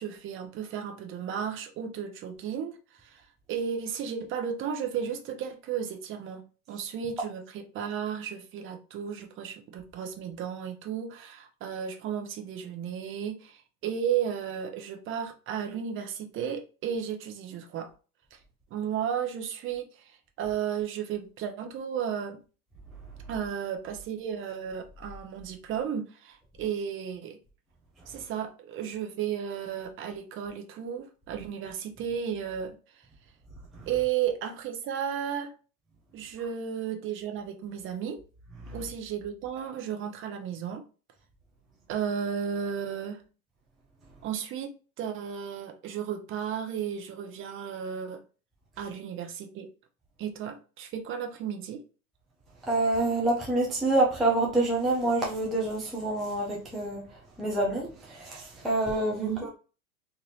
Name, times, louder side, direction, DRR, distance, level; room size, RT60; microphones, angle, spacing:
voice 1, 0.0-2.7 3.0-3.2 3.5-6.4 6.7-17.9 18.3-18.4 18.7-20.1 20.4-22.4 23.3-27.4 28.1-32.7 33.9-35.5 36.1-38.2 38.7-40.8 41.9-43.2 44.2-44.7 45.0-48.2 48.8-49.7 50.2-51.8 59.2-59.5, right 8 dB, 25° right, 0.7 m, -34 dB
voice 2, 52.7-57.0 57.4-59.5, right 2 dB, ahead, 0.3 m, -27 dB
3.4 x 2.5 x 2.7 m
hypercardioid pair, 100°, 45 cm